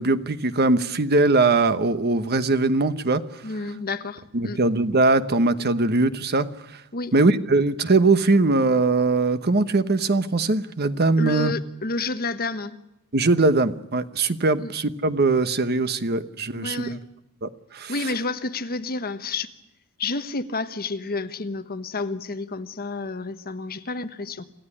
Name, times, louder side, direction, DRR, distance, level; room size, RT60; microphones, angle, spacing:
voice 1, 0.0-3.4 4.3-6.5 7.1-11.5 13.1-16.9 17.4-17.9, right 3 dB, 50° right, 12 dB, 1.1 m, -21 dB
voice 2, 3.4-4.6 6.9-7.1 11.2-12.7 14.6-14.7 16.6-17.0 17.9-19.5 20.0-24.4, left 3 dB, 45° left, 9 dB, 1.2 m, -30 dB
27.5 x 15.0 x 9.9 m, 0.87 s
head